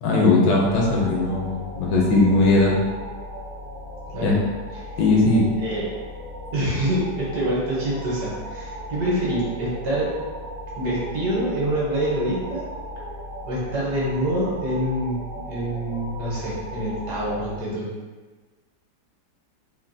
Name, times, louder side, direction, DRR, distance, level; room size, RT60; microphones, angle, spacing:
voice 1, 0.0-2.8 4.2-4.3 5.0-5.5, left 2 dB, 75° left, -2 dB, 1.2 m, -19 dB
sound 1, 0.6-17.6, equal, 85° right, 0.5 m, -37 dB
voice 2, 6.5-10.1 10.8-12.7 13.4-17.9, right 1 dB, 65° right, -6 dB, 1.3 m, -26 dB
3.2 x 2.3 x 2.5 m, 1.3 s
omnidirectional pair, 2.0 m